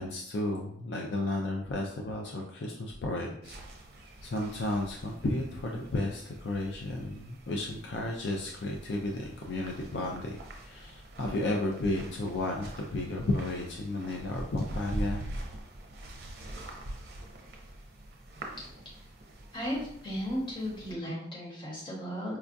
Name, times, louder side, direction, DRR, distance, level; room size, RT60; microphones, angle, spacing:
voice 1, 0.0-3.6 4.2-15.3, left 2 dB, 60° left, 0 dB, 0.4 m, -33 dB
sound 1, 3.4-20.9, right 1 dB, 55° right, 0.6 m, -44 dB
voice 2, 19.5-22.4, equal, 25° left, -5 dB, 1.1 m, -35 dB
4.7 x 2.3 x 2.6 m, 0.68 s
head